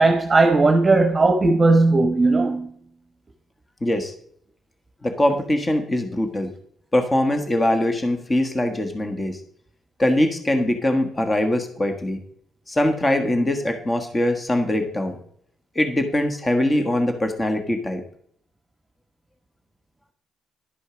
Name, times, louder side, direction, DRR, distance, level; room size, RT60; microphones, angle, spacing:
voice 1, 0.0-2.7, right 3 dB, 25° right, 1.1 m, -17 dB
voice 2, 3.8-4.1 5.0-6.5 6.9-9.4 10.0-12.2 12.7-15.2 15.7-18.0, left 1 dB, 20° left, 1.4 m, -22 dB
11.5 x 5.1 x 5.0 m
cardioid pair, 90°, 0 cm